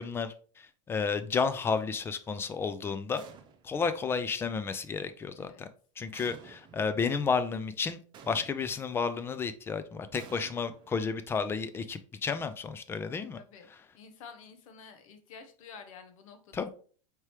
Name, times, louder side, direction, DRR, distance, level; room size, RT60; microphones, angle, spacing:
voice 1, 0.0-3.2 3.6-5.7 6.0-8.0 8.3-13.4 16.5-16.7, left 5 dB, 15° left, 0.3 m, -32 dB
sound 1, 3.1-3.9 6.1-6.9 8.1-8.9 10.1-11.4, right 6 dB, 30° right, 0.6 m, -52 dB
voice 2, 5.4-5.7 6.1-6.3 13.3-13.7 13.9-16.7, left 5 dB, 85° left, 0.9 m, -50 dB
4.7 x 2.9 x 3.2 m
supercardioid pair, 140°, 17 cm